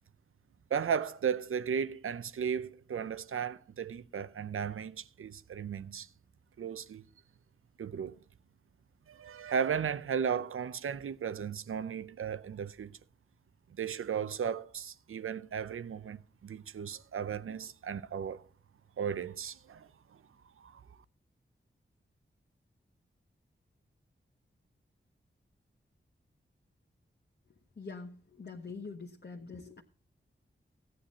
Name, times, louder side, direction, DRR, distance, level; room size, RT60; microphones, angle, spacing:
voice 1, 0.7-6.1 6.6-7.0 7.8-8.2 9.1-13.0 13.7-18.5 19.0-20.2 20.6-21.0, right 7 dB, 80° right, 0.6 m, -35 dB
voice 2, 27.8-29.8, left 4 dB, 50° left, 1.2 m, -44 dB
15.0 x 9.2 x 4.1 m
cardioid pair, 55°, 21 cm